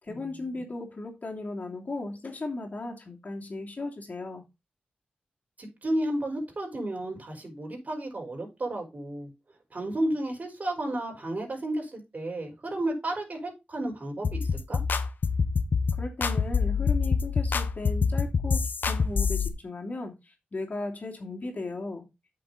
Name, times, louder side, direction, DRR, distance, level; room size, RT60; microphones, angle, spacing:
voice 1, 0.0-4.4 15.9-22.0, left 2 dB, 50° left, 2.8 m, -36 dB
voice 2, 5.6-9.3 9.7-14.8, right 1 dB, 50° right, 5.0 m, -32 dB
sound 1, 14.2-19.5, left 5 dB, 65° left, 1.1 m, -26 dB
8.3 x 6.7 x 4.1 m
cardioid pair, 50°, 3 cm